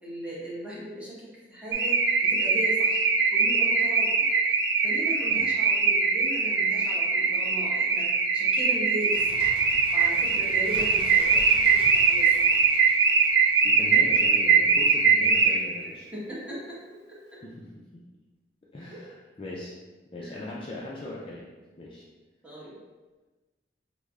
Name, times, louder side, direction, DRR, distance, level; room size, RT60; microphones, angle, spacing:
voice 1, 0.0-3.1 3.3-4.2 4.8-8.1 8.3-9.5 9.9-12.5 16.1-16.8 17.1-17.2 18.9-19.0 20.2-20.5 22.4-22.8, equal, 5° right, -8 dB, 0.9 m, -38 dB
Car / Alarm, 1.7-15.9, right 5 dB, 65° right, 0.3 m, -22 dB
Bird, 8.8-14.4 14.7-14.8, equal, 30° right, 0.6 m, -45 dB
voice 2, 13.6-16.1 17.4-17.7 17.9-18.0 18.7-19.8 20.1-21.5 21.8-22.1, left 1 dB, 30° left, -5 dB, 0.4 m, -39 dB
3.2 x 2.1 x 3.5 m, 1.2 s
head